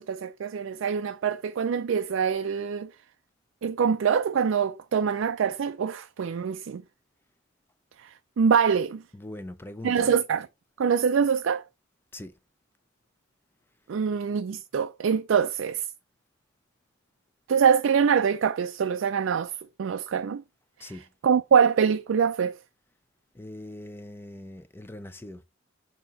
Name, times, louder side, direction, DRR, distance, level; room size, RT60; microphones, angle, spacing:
voice 1, 0.0-2.9 3.6-6.8 8.0-8.1 8.4-9.0 9.8-10.5 10.8-11.6 13.9-15.9 17.5-19.5 19.8-20.4 20.8-20.9 21.2-22.6, right 7 dB, 70° right, 0.3 m, -24 dB
voice 2, 9.1-10.2 12.1-12.3 20.8-21.1 23.3-25.4, left 1 dB, 10° left, 0.4 m, -41 dB
6.9 x 2.9 x 5.2 m
head